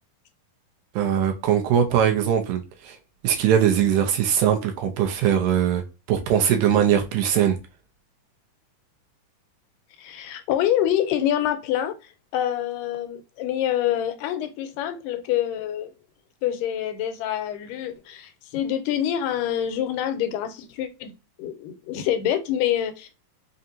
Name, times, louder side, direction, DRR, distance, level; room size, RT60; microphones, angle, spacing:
voice 1, 1.0-3.0 3.2-5.8 6.1-7.6, right 9 dB, 75° right, 2.1 m, -21 dB
voice 2, 10.0-12.0 12.3-15.9 16.4-21.1 21.4-23.1, left 11 dB, 85° left, 2.2 m, -26 dB
5.5 x 2.5 x 2.7 m
omnidirectional pair, 3.7 m